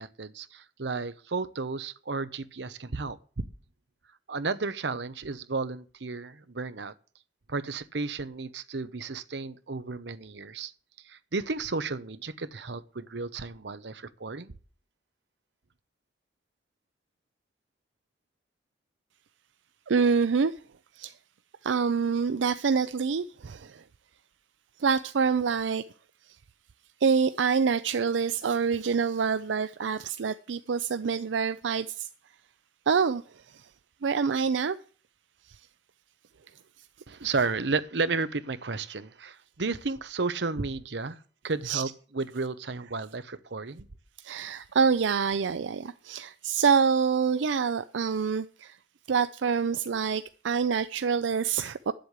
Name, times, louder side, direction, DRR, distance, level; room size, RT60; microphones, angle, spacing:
voice 1, 0.0-3.4 4.3-6.9 7.5-10.7 11.1-14.5 37.1-41.2 41.4-43.9, right 4 dB, 75° right, 0.8 m, -33 dB
voice 2, 19.9-20.6 21.0-21.1 21.6-23.8 24.8-25.8 26.3-26.4 27.0-32.1 32.9-33.7 34.0-34.8 35.5-35.6 41.6-41.8 44.2-48.8 49.1-51.9, right 6 dB, 90° right, 0.5 m, -26 dB
10.5 x 7.8 x 8.1 m
head